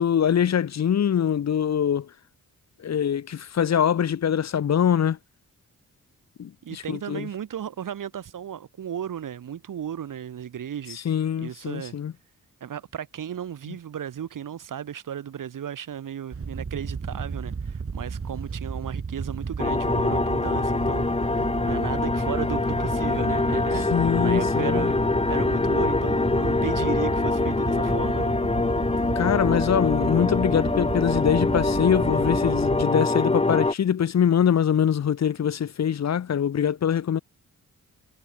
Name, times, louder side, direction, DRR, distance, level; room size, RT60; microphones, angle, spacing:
voice 1, 0.0-2.1 2.8-5.2 6.4-7.3 11.0-12.1 23.9-24.9 29.2-37.2, left 8 dB, 55° left, 0.9 m, -23 dB
voice 2, 6.6-11.0 11.4-12.0 12.6-21.3 21.6-28.3, right 9 dB, 75° right, 1.9 m, -35 dB
Wind / Boat Water vehicle, 16.3-32.8, right 5 dB, 45° right, 2.9 m, -33 dB
sound 1, 19.6-33.7, left 3 dB, 20° left, 1.2 m, -24 dB
cardioid pair, 85°, 32 cm